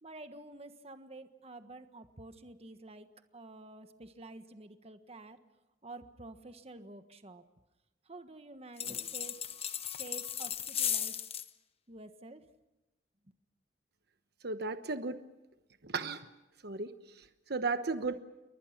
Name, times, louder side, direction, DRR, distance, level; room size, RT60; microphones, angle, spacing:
voice 1, 0.0-3.1 3.3-5.4 5.8-7.4 8.0-9.4 10.0-11.2 11.9-12.4, right 2 dB, 35° right, 8 dB, 1.4 m, -49 dB
sound 1, 8.8-11.5, left 9 dB, 35° left, 1.0 m, -36 dB
voice 2, 14.4-15.2 15.8-16.3 16.6-18.2, right 4 dB, 60° right, 9 dB, 1.1 m, -35 dB
29.5 x 23.0 x 6.0 m, 1.0 s
head